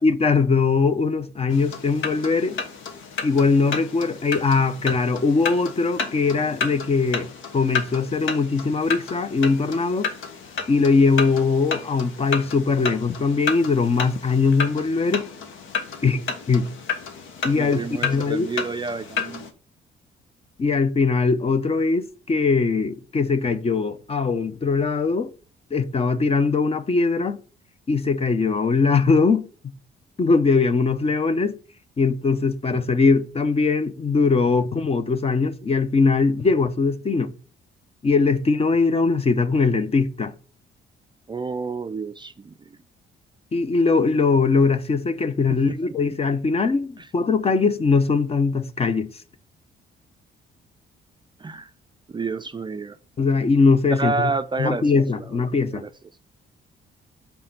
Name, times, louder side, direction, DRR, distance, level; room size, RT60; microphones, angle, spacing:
voice 1, 0.0-2.6 3.2-7.3 7.5-10.1 10.7-15.3 16.0-16.7 17.4-18.5 20.6-25.3 25.7-27.4 27.9-29.5 30.2-31.6 32.0-37.3 38.0-40.3 43.5-49.1 53.2-54.3 54.6-55.8, left 4 dB, 30° left, 0.6 m, -21 dB
sound 1, 1.5-19.5, left 5 dB, 80° left, 1.1 m, -32 dB
voice 2, 17.5-19.5 41.3-42.8 45.7-45.8 47.0-47.1 51.4-51.7 52.1-53.0 53.9-55.3 55.7-55.9, right 4 dB, 25° right, 0.4 m, -29 dB
5.5 x 4.3 x 5.8 m
cardioid pair, 90°, 20 cm